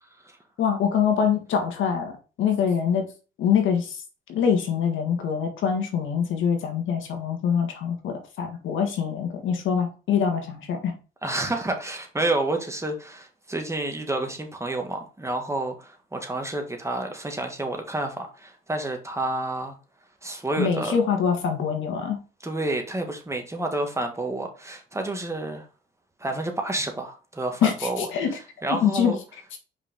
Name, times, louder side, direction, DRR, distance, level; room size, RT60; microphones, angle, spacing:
voice 1, 0.6-3.1 3.4-4.0 4.3-11.0 20.6-22.2 27.6-28.3 28.7-29.1, left 7 dB, 80° left, 4 dB, 1.7 m, -24 dB
voice 2, 11.2-19.8 20.2-21.0 22.4-25.7 26.2-28.1 28.6-29.2, right 2 dB, 15° right, 4 dB, 1.8 m, -29 dB
5.5 x 4.9 x 3.7 m, 0.34 s
cardioid pair, 90°, 20 cm